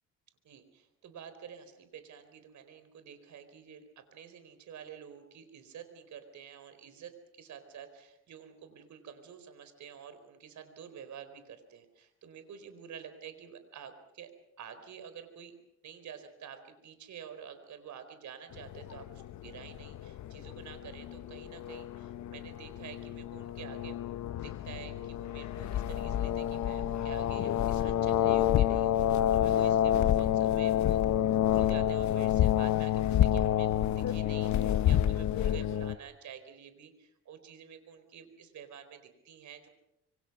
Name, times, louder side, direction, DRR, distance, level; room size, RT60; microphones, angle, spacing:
voice 1, 0.4-14.3 14.6-15.5 15.8-24.0 24.3-31.0 31.4-39.7, right 8 dB, 70° right, 10 dB, 4.4 m, -49 dB
sound 1, 18.5-36.0, left 11 dB, 70° left, 1.0 m, -29 dB
26.0 x 24.5 x 6.1 m, 0.84 s
cardioid pair, 90°, 30 cm